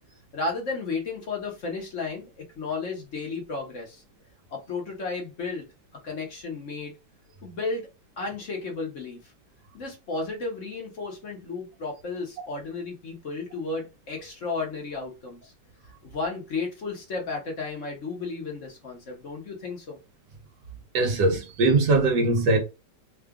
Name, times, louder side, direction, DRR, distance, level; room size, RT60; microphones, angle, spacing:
voice 1, 0.3-4.0 4.5-5.6 6.0-6.9 7.4-7.9 8.2-9.2 9.7-15.5 16.0-20.0, left 3 dB, 50° left, 1.2 m, -33 dB
voice 2, 20.9-22.6, right 3 dB, 75° right, 1.6 m, -21 dB
3.8 x 2.3 x 3.6 m
omnidirectional pair, 1.9 m